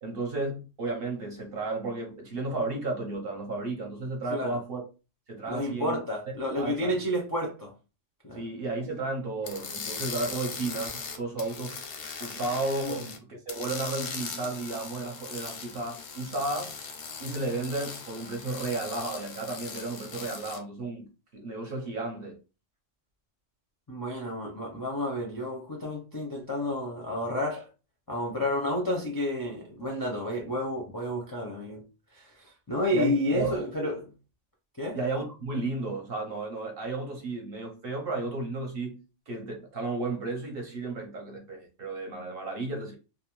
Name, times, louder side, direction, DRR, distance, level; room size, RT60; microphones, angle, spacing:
voice 1, 0.0-4.8 5.3-6.0 6.5-6.9 8.3-11.8 12.2-16.7 17.2-22.4 32.9-33.6 34.9-43.0, right 3 dB, 55° right, 0.8 m, -33 dB
voice 2, 5.5-7.7 8.2-8.5 12.8-13.0 23.9-27.7 28.1-31.8 32.1-34.1 34.8-35.0, left 1 dB, 30° left, 0.4 m, -31 dB
sound 1, 9.4-13.2 13.5-20.6, left 5 dB, 90° left, 1.0 m, -39 dB
2.5 x 2.0 x 2.9 m
omnidirectional pair, 1.3 m